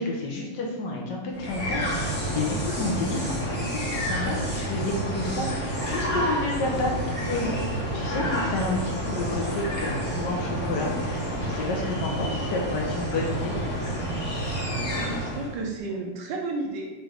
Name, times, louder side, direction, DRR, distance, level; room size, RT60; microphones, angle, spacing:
voice 1, 0.0-7.6 7.9-13.8 15.9-16.0, left 2 dB, 70° left, -1 dB, 1.4 m, -30 dB
sound 1, 1.3-15.6, right 1 dB, 15° left, 1.3 m, -29 dB
voice 2, 14.9-16.8, right 3 dB, 85° right, 0 dB, 1.5 m, -32 dB
6.0 x 2.5 x 3.3 m, 1.1 s
omnidirectional pair, 2.0 m